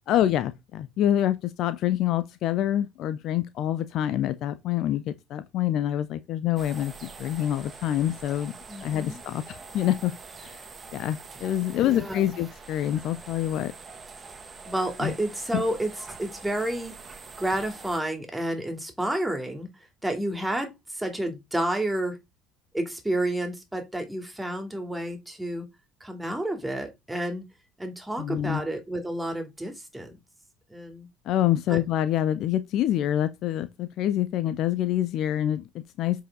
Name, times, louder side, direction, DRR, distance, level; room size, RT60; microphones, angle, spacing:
voice 1, 0.1-8.5 8.8-10.1 10.4-10.6 10.9-13.7 15.0-15.1 15.5-15.6 28.2-28.6 31.3-36.2, left 12 dB, 55° left, 0.7 m, -26 dB
sound 1, 6.6-18.0, right 4 dB, 30° right, 1.9 m, -45 dB
voice 2, 8.7-9.2 11.8-12.3 14.6-17.0 17.4-19.7 20.0-22.2 22.7-25.7 26.0-27.4 27.8-30.2 30.7-31.1 31.7-31.8, right 1 dB, 10° right, 2.8 m, -30 dB
8.0 x 5.0 x 3.8 m
figure-of-eight pair, 60°, 0 cm